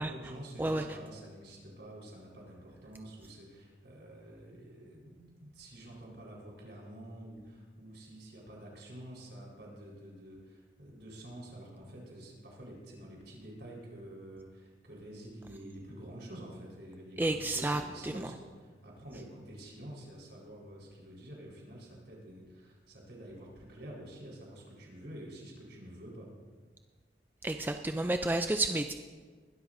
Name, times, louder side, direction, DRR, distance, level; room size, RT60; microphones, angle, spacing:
voice 1, 0.0-26.3, right 1 dB, 65° right, -3 dB, 4.3 m, -48 dB
voice 2, 17.2-18.3 27.4-28.9, right 2 dB, 10° right, 6 dB, 0.3 m, -31 dB
21.5 x 12.5 x 2.6 m, 1.5 s
head